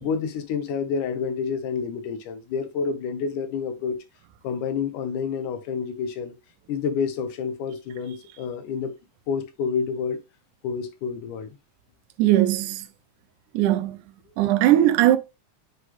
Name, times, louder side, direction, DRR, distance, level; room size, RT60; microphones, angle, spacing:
voice 1, 0.0-4.0 4.4-6.3 6.7-8.9 9.3-10.2 10.6-11.6, left 6 dB, 85° left, 2.5 m, -28 dB
voice 2, 12.2-12.9 13.5-14.0 14.4-15.2, right 13 dB, 85° right, 2.1 m, -19 dB
8.0 x 3.9 x 3.0 m
omnidirectional pair, 3.5 m